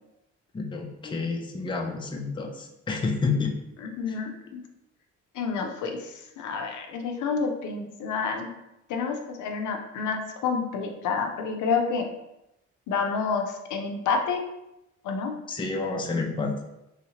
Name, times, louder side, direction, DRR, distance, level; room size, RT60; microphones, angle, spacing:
voice 1, 0.5-3.5 15.5-16.6, left 4 dB, 15° left, 1 dB, 0.5 m, -29 dB
voice 2, 3.8-4.6 5.3-8.5 8.9-12.1 12.9-14.4 15.0-15.3, left 5 dB, 75° left, 3 dB, 0.6 m, -29 dB
3.1 x 2.8 x 2.8 m, 0.88 s
cardioid pair, 90°, 30 cm